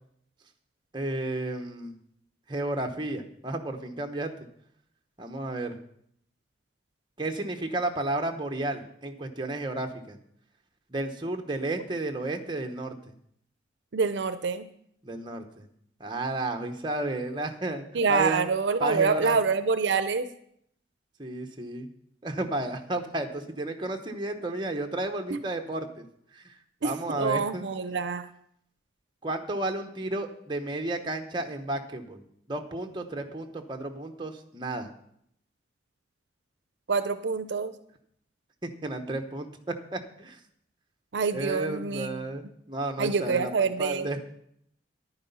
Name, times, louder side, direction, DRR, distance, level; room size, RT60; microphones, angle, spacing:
voice 1, 0.9-2.0 2.5-4.3 5.2-5.8 7.2-10.2 10.9-13.1 15.0-15.7 16.0-18.4 18.8-19.4 21.2-21.9 22.2-26.0 26.3-26.5 26.8-27.7 29.2-34.9 38.8-39.5 39.9-40.4 41.3-44.2, right 2 dB, 25° right, 4 dB, 1.0 m, -32 dB
voice 2, 13.9-14.7 17.9-20.3 25.3-25.4 26.8-28.3 36.9-37.8 41.1-42.2 43.0-44.2, right 5 dB, 70° right, 12 dB, 0.5 m, -26 dB
10.0 x 9.9 x 5.5 m, 0.69 s
head